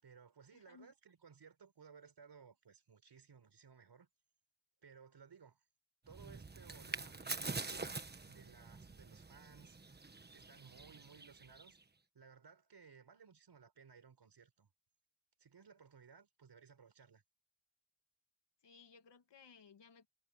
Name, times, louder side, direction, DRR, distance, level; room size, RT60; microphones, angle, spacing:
voice 1, 0.0-4.1 4.8-5.6 6.1-9.8 10.3-11.8 12.1-14.7 15.4-17.2, right 6 dB, 60° right, 5.0 m, -60 dB
voice 2, 0.5-0.9 18.6-20.1, left 5 dB, 65° left, 2.4 m, -61 dB
sound 1, 6.1-11.8, right 3 dB, 20° right, 1.3 m, -46 dB
wide cardioid pair, 120°, 45 cm